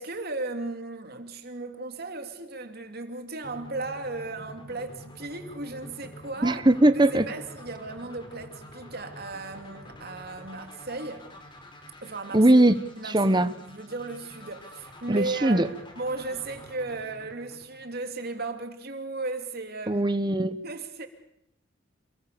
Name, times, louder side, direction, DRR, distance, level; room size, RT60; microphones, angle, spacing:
voice 1, 0.0-6.6 6.9-11.3 12.0-12.5 12.9-15.7 16.0-20.0 20.6-21.1, right 3 dB, 55° right, 3.0 m, -36 dB
sound 1, 3.4-18.4, left 1 dB, 25° left, 4.9 m, -47 dB
voice 2, 6.4-7.3 12.3-12.8 13.1-13.5 15.1-15.7 19.9-20.6, right 1 dB, 25° right, 1.2 m, -20 dB
28.0 x 22.5 x 7.0 m
head